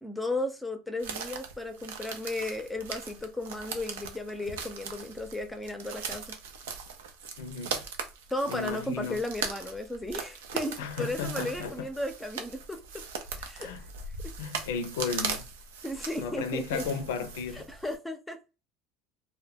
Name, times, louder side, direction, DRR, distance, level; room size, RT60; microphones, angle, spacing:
voice 1, 0.0-6.4 8.3-13.0 13.4-13.7 14.2-14.3 15.8-16.9 17.5-18.4, left 1 dB, 10° left, 0.5 m, -35 dB
sound 1, 1.0-17.9, right 6 dB, 90° right, 0.4 m, -39 dB
voice 2, 7.4-7.8 8.5-9.2 10.8-11.9 13.6-13.9 14.4-15.5 16.2-17.7, left 5 dB, 85° left, 0.4 m, -34 dB
2.1 x 2.1 x 3.4 m
supercardioid pair, 95°, 0 cm